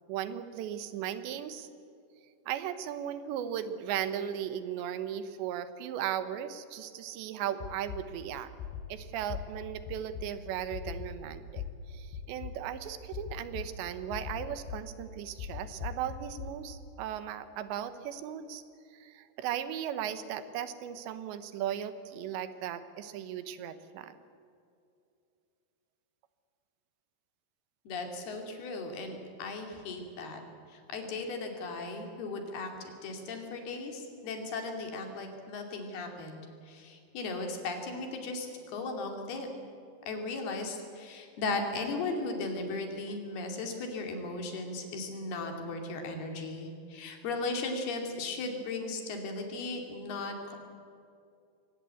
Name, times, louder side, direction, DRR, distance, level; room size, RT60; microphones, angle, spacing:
voice 1, 0.1-1.7 2.5-8.5 8.9-11.6 11.9-18.6 18.9-24.1, right 10 dB, 85° right, 11 dB, 3.4 m, -37 dB
sound 1, 7.6-8.0 8.6-8.8 9.3-9.4 9.9-10.2 10.7-11.1 11.6-11.7 12.1-12.5 13.1-13.6 14.1-14.8 15.4-16.5, left 8 dB, 90° left, 5.1 m, -38 dB
voice 2, 27.9-30.4 30.7-39.5 40.1-50.6, left 3 dB, 65° left, 4 dB, 4.5 m, -37 dB
23.0 x 18.0 x 8.4 m, 2.5 s
omnidirectional pair, 4.9 m